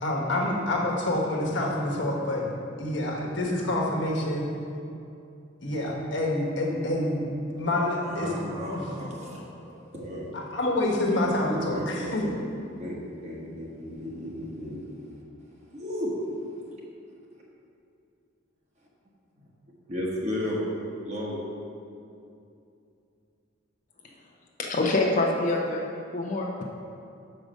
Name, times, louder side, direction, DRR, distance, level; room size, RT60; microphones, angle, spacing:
voice 1, 0.0-2.5 2.8-4.5 5.6-7.2 7.6-8.3 8.7-8.8 10.3-12.2, left 1 dB, 70° left, -1 dB, 1.2 m, -27 dB
voice 2, 8.0-10.3 11.4-12.4 12.8-14.8 15.7-16.1 19.9-20.6 21.0-21.4, left 1 dB, 35° right, -4 dB, 1.4 m, -34 dB
voice 3, 24.6-25.9 26.1-26.6, left 2 dB, 40° left, 0 dB, 0.6 m, -25 dB
6.5 x 5.0 x 6.2 m, 2.6 s
head